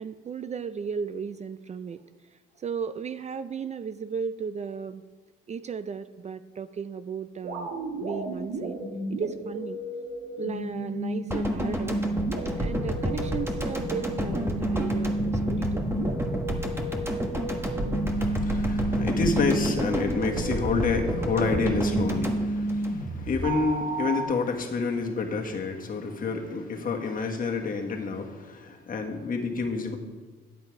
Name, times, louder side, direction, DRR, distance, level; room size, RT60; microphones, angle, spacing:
voice 1, 0.0-5.0 5.5-7.7 8.0-8.8 9.1-9.8 10.4-12.0 12.6-15.9, right 6 dB, 35° right, 13 dB, 0.4 m, -35 dB
sound 1, 7.4-24.2, right 1 dB, 85° right, 1.7 m, -32 dB
sound 2, 11.3-23.5 23.8-23.9, equal, 10° right, 1.3 m, -30 dB
voice 2, 18.1-30.0, left 4 dB, 45° left, 2 dB, 1.5 m, -28 dB
9.7 x 8.4 x 4.7 m, 1.3 s
cardioid pair, 90°, 20 cm